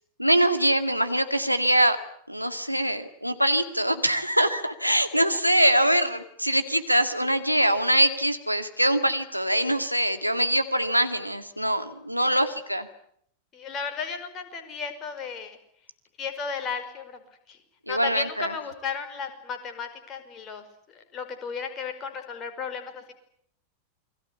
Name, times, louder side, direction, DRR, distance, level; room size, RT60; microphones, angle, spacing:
voice 1, 0.2-2.0 2.3-12.9 17.9-18.5, right 1 dB, 90° right, 8 dB, 2.0 m, -23 dB
voice 2, 4.9-5.4 13.5-15.6 16.2-17.2 17.5-17.6 17.9-20.6 20.9-23.1, left 5 dB, 30° left, 7 dB, 5.3 m, -34 dB
29.0 x 22.0 x 8.4 m, 0.69 s
figure-of-eight pair, 90°, 0 cm